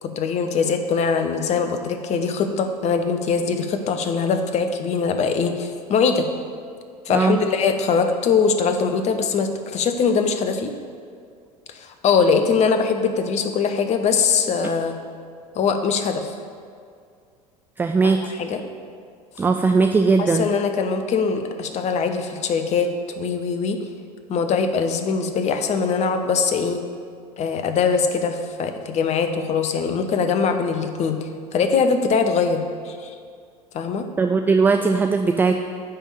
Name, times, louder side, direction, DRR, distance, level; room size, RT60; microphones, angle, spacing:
voice 1, 0.0-6.3 7.1-10.7 11.7-15.0 15.5-16.3 18.0-18.6 20.2-22.9 23.2-23.8 24.3-26.8 27.4-31.2 31.5-33.1 33.7-34.1, left 5 dB, 35° left, 7 dB, 0.8 m, -22 dB
voice 2, 17.8-18.3 19.4-20.5 34.2-35.6, right 4 dB, 10° right, 6 dB, 0.3 m, -19 dB
10.0 x 3.6 x 7.0 m, 2.2 s
figure-of-eight pair, 70°, 19 cm